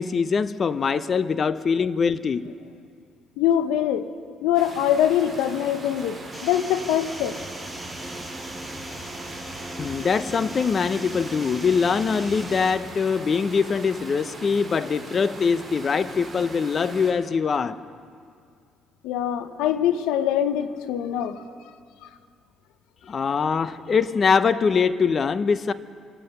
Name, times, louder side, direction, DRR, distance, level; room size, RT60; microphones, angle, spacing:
voice 1, 0.0-2.5 9.8-17.8 23.1-25.7, left 5 dB, 45° left, 14 dB, 0.7 m, -23 dB
voice 2, 3.4-4.1 4.4-7.4 19.0-21.4, left 10 dB, 85° left, 11 dB, 0.8 m, -23 dB
sound 1, 4.5-17.1, right 2 dB, 20° right, 4.7 m, -40 dB
sound 2, 6.3-12.7, right 1 dB, ahead, 2.0 m, -38 dB
25.5 x 9.0 x 5.5 m, 2.2 s
supercardioid pair, 75°, 0 cm